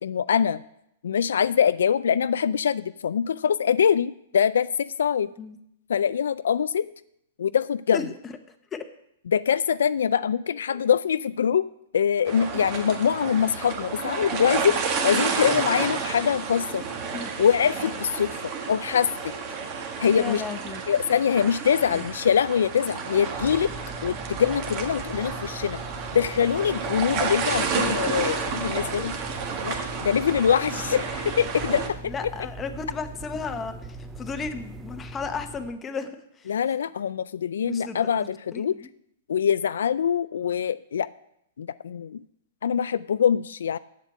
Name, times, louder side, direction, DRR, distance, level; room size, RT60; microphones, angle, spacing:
voice 1, 0.0-0.6 1.0-5.3 5.9-6.9 7.4-8.0 9.3-11.7 11.9-16.8 17.4-19.3 20.0-20.4 20.9-23.7 24.0-25.8 26.1-29.1 29.6-32.3 36.5-38.8 39.3-41.1 41.6-42.2 42.6-43.8, left 8 dB, 85° left, 15 dB, 0.3 m, -24 dB
sound 1, 12.3-31.9, right 5 dB, 35° right, 1.5 m, -31 dB
voice 2, 20.2-20.8 21.9-22.0 28.2-28.3 32.1-36.5 37.6-38.9, left 5 dB, 15° left, 7 dB, 0.9 m, -34 dB
sound 2, 23.3-35.7, right 2 dB, 15° right, 0.5 m, -40 dB
7.5 x 7.4 x 8.3 m, 0.77 s
hypercardioid pair, 145°, 0 cm